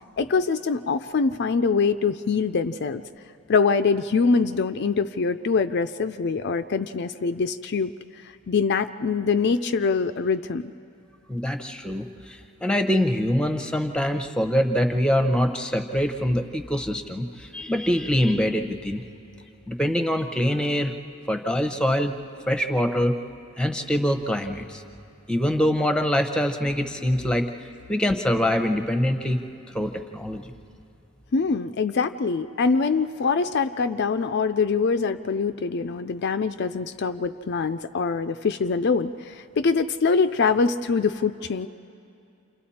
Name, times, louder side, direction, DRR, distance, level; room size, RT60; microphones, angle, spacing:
voice 1, 0.2-3.0 3.5-10.7 31.3-41.7, left 4 dB, 50° left, 10 dB, 0.4 m, -24 dB
voice 2, 11.3-19.1 19.7-20.9 21.3-22.1 22.5-23.1 23.6-24.8 25.3-27.5 27.9-29.4 29.7-30.5, equal, 5° left, 6 dB, 0.9 m, -24 dB
28.5 x 28.0 x 4.3 m, 2.6 s
head